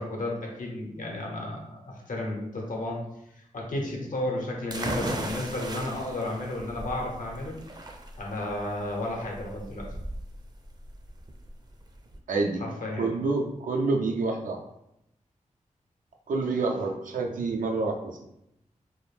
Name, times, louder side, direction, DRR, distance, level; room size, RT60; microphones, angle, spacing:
voice 1, 0.0-3.0 3.3-7.6 8.2-9.9 12.6-13.2, left 1 dB, 85° left, -1 dB, 0.7 m, -33 dB
sound 1, 4.7-12.2, right 1 dB, 30° right, 0.4 m, -37 dB
voice 2, 12.3-12.6 13.0-14.6 16.3-18.2, right 3 dB, 90° right, 2 dB, 0.4 m, -27 dB
2.4 x 2.0 x 3.2 m, 0.81 s
cardioid pair, 50°, 13 cm